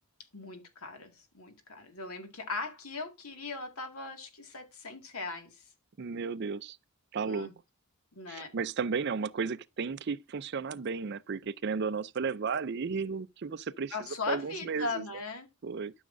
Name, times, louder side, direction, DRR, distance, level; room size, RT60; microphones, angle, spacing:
voice 1, 0.3-5.7 7.2-7.5 8.1-8.5 13.9-15.5, left 3 dB, 85° left, 2.0 m, -39 dB
voice 2, 6.0-6.8 7.1-7.5 8.3-13.9 14.3-15.0 15.6-15.9, right 5 dB, 50° right, 0.5 m, -34 dB
12.5 x 6.4 x 2.6 m
head